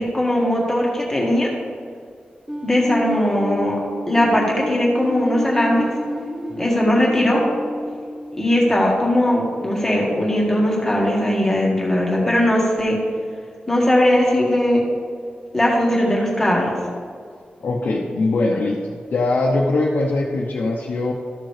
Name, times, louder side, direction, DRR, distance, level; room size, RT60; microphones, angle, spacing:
voice 1, 0.0-1.5 2.6-3.8 4.1-5.8 6.6-7.4 8.3-13.0 13.7-14.8 15.5-16.8, left 1 dB, 10° left, -3 dB, 1.7 m, -19 dB
sound 1, 2.5-9.3, left 1 dB, 20° right, 0.8 m, -30 dB
voice 2, 17.6-21.1, left 2 dB, 80° left, -4 dB, 0.9 m, -21 dB
13.5 x 6.4 x 3.4 m, 2.1 s
wide cardioid pair, 170°, 3 cm